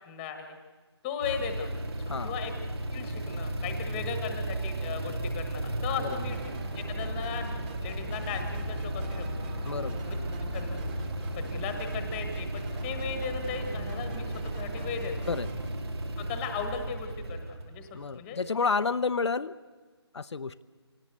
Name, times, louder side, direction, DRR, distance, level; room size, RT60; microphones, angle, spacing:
voice 1, 0.0-0.6 1.0-1.7 2.0-2.5 2.9-6.4 6.7-7.5 7.8-9.2 10.5-10.8 11.4-15.2 16.2-17.9 18.1-18.4, left 6 dB, 10° left, 6 dB, 1.4 m, -37 dB
sound 1, 1.2-18.4, right 1 dB, 65° right, 2.6 m, -35 dB
sound 2, 6.0-15.7, right 3 dB, 20° right, 1.9 m, -42 dB
voice 2, 9.7-10.0 15.3-15.5 17.9-19.5 20.1-20.6, left 4 dB, 80° left, 10 dB, 0.7 m, -30 dB
26.5 x 18.5 x 8.1 m, 1.4 s
hypercardioid pair, 165°, 14 cm